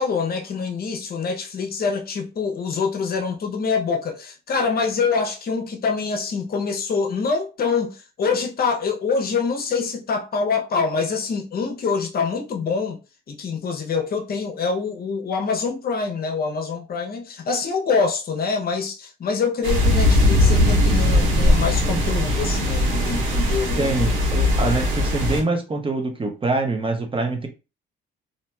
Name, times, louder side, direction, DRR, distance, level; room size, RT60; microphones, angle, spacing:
voice 1, 0.0-13.0 13.3-23.9, left 5 dB, 50° left, 0.6 m, -25 dB
sound 1, 19.6-25.4, left 1 dB, 85° right, 1.2 m, -19 dB
voice 2, 23.8-27.5, right 3 dB, 25° right, 0.8 m, -24 dB
2.9 x 2.6 x 2.2 m
cardioid pair, 90°, 20 cm